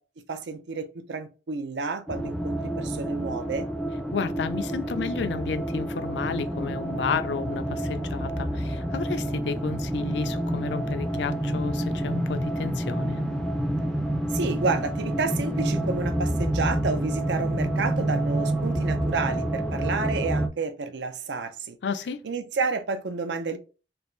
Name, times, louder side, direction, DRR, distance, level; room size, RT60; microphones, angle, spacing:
voice 1, 0.3-3.7 14.3-21.8 22.2-23.6, right 4 dB, 80° right, 0.5 m, -30 dB
sound 1, 2.1-20.5, right 1 dB, 5° left, 0.4 m, -28 dB
voice 2, 4.1-13.2 21.8-22.2, left 5 dB, 80° left, 0.4 m, -32 dB
3.3 x 2.5 x 3.0 m
head